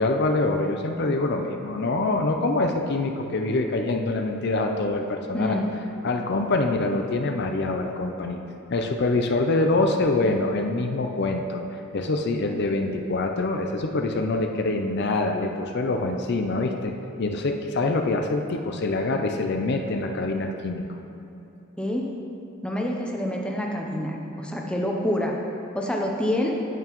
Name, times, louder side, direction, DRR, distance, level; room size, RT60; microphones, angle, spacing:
voice 1, 0.0-5.6 6.0-8.4 8.7-11.6 11.9-16.9 17.2-20.8, left 2 dB, 50° left, 4 dB, 0.5 m, -25 dB
voice 2, 5.3-5.7 21.8-22.0 22.6-25.3 25.7-26.5, left 1 dB, 5° left, -1 dB, 0.6 m, -27 dB
9.0 x 8.8 x 3.0 m, 2.9 s
head